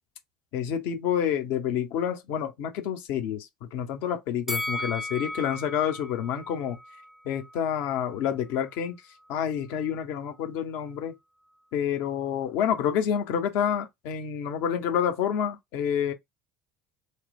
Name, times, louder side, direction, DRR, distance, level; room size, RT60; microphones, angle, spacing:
voice 1, 0.5-6.8 7.2-9.0 9.3-11.1 11.7-16.1, left 9 dB, 60° left, 0.8 m, -28 dB
Bell, 4.5-7.7 8.0-8.1, left 1 dB, 5° right, 0.4 m, -36 dB
3.1 x 2.0 x 2.4 m
figure-of-eight pair, 65°, 4 cm